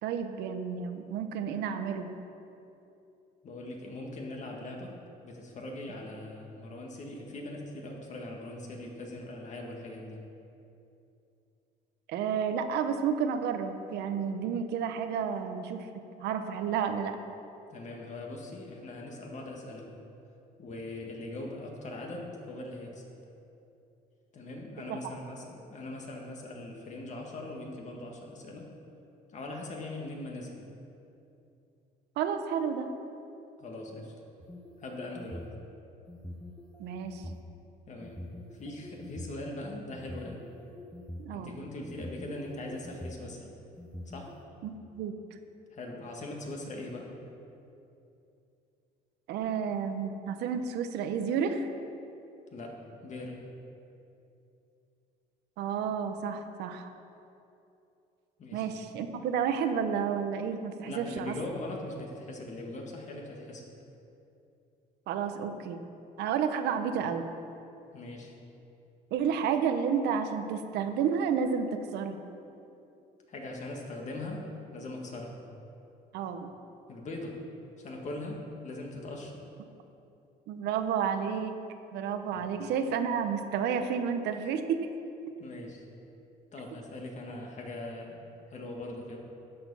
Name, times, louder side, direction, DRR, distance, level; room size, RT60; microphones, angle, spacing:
voice 1, 0.0-2.1 12.1-15.9 16.2-17.2 24.9-25.0 32.2-32.9 36.8-37.2 41.2-41.6 44.6-45.1 49.3-51.7 55.6-56.9 58.5-61.4 65.1-65.8 66.2-67.3 69.1-72.2 76.1-76.5 80.5-81.5 81.9-84.9, right 7 dB, 80° right, 7 dB, 0.9 m, -31 dB
voice 2, 3.4-5.0 5.2-10.2 17.7-19.9 20.6-23.0 24.3-28.7 29.3-30.7 33.6-34.1 34.8-35.5 37.9-38.2 38.5-40.4 41.3-43.5 44.1-44.3 45.7-47.1 52.5-53.5 58.4-58.7 60.9-63.6 67.9-68.3 73.3-74.5 74.7-75.4 76.9-77.4 77.8-79.4 82.3-82.4 85.4-85.8 86.5-88.2 88.5-89.3, left 2 dB, 45° left, 0 dB, 1.9 m, -41 dB
sound 1, 34.4-35.5 36.1-37.4 38.0-39.3 39.9-41.3 41.8-43.2 43.8-44.4, left 1 dB, 5° left, 0.7 m, -44 dB
12.0 x 6.7 x 5.6 m, 2.8 s
cardioid pair, 110°, 17 cm